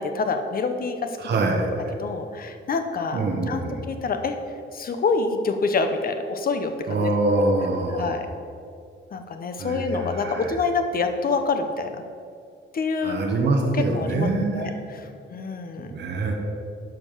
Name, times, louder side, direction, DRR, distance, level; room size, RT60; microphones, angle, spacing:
voice 1, 0.0-1.4 2.0-4.4 4.7-7.4 7.9-8.3 9.1-11.9 12.7-13.2 13.7-14.3 14.5-14.7 15.3-15.9, left 4 dB, 45° left, 7 dB, 0.9 m, -26 dB
voice 2, 1.2-1.9 3.1-3.8 6.9-8.2 9.6-10.5 13.0-14.7 15.9-16.3, right 2 dB, 55° right, 0 dB, 1.3 m, -24 dB
11.5 x 5.2 x 7.3 m, 2.4 s
wide cardioid pair, 175°, 21 cm